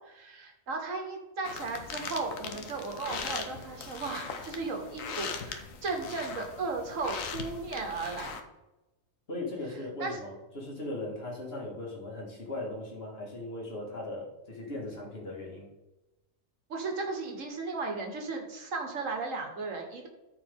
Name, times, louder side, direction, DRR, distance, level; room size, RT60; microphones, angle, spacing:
voice 1, 0.1-8.4 10.0-10.2 16.7-20.1, right 3 dB, 80° right, 3 dB, 1.7 m, -35 dB
sound 1, 1.5-8.4, left 5 dB, 85° left, 1.3 m, -40 dB
voice 2, 9.3-15.7, left 2 dB, 50° left, -2 dB, 2.2 m, -38 dB
13.0 x 4.7 x 3.6 m, 1.0 s
omnidirectional pair, 1.3 m